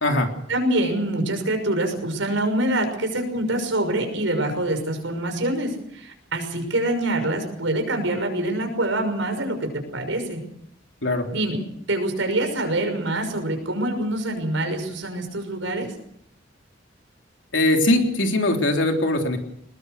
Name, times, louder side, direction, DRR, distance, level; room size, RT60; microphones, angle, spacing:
voice 1, 0.5-10.4 11.3-11.6 11.9-15.9, right 1 dB, 80° right, 5 dB, 6.0 m, -25 dB
voice 2, 17.5-19.4, left 1 dB, 70° left, 3 dB, 3.4 m, -21 dB
20.5 x 20.5 x 6.6 m, 0.72 s
head